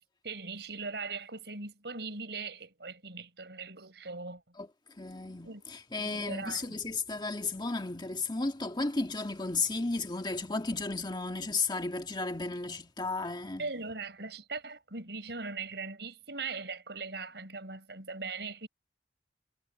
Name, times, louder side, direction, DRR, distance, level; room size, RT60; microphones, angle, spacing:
voice 1, 0.2-4.4 5.4-5.7 6.0-6.8 13.6-18.7, right 4 dB, 75° right, 5.2 m, -40 dB
voice 2, 5.0-13.7, left 3 dB, 25° left, 1.7 m, -34 dB
head